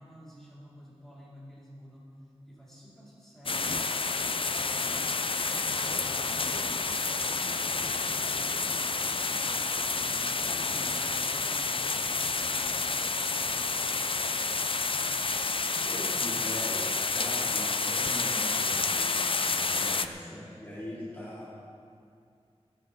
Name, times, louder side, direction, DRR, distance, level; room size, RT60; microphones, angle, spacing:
voice 1, 0.0-2.2 2.5-5.4 6.6-16.9 20.3-20.5, equal, 5° left, -8 dB, 4.5 m, -52 dB
sound 1, 3.5-20.1, left 4 dB, 50° left, 0.5 m, -29 dB
voice 2, 15.8-21.6, equal, 20° left, -10 dB, 4.1 m, -41 dB
17.5 x 14.5 x 3.7 m, 2.3 s
wide cardioid pair, 75°, 11 cm